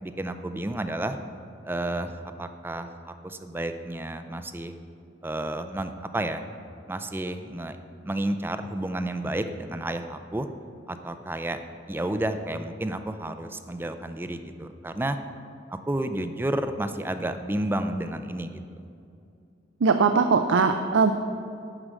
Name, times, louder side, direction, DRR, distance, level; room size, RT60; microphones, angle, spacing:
voice 1, 0.0-1.2 1.6-2.1 2.4-4.8 5.2-6.4 6.9-7.8 8.0-10.5 10.9-11.6 11.9-15.2 15.7-18.6, right 1 dB, 10° right, 9 dB, 0.4 m, -31 dB
voice 2, 19.8-21.1, right 5 dB, 85° right, 7 dB, 0.5 m, -20 dB
11.0 x 4.9 x 7.6 m, 2.5 s
head